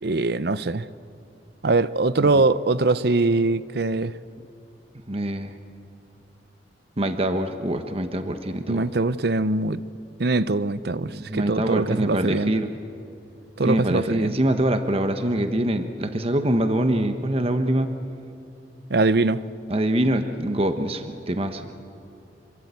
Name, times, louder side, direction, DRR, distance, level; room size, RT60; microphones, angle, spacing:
voice 1, 0.0-0.9 1.6-4.1 8.7-9.8 10.2-12.5 13.6-14.4 18.9-19.4, right 3 dB, 60° right, 0.7 m, -22 dB
voice 2, 5.1-5.5 7.0-8.9 11.1-12.7 13.6-17.9 19.7-21.7, right 1 dB, 35° right, 1.2 m, -24 dB
27.0 x 23.5 x 8.3 m
head